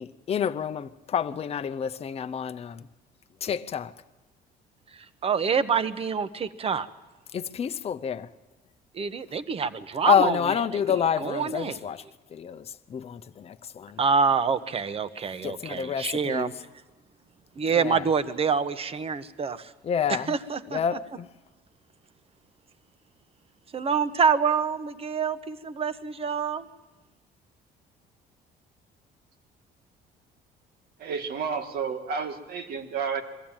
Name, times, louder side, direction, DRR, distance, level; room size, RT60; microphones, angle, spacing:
voice 1, 0.0-2.9 3.4-3.9 7.3-8.3 10.1-12.0 12.3-14.0 15.4-16.5 17.7-18.0 19.8-20.4 20.7-21.3, left 8 dB, 35° left, 0.7 m, -28 dB
voice 2, 4.9-6.9 8.9-10.4 11.2-11.8 14.0-16.5 17.6-19.7 20.1-20.8 23.7-26.7, right 6 dB, 35° right, 1.0 m, -26 dB
voice 3, 31.0-33.2, right 6 dB, 65° right, 2.1 m, -31 dB
22.5 x 14.5 x 8.9 m
cardioid pair, 110°, 17 cm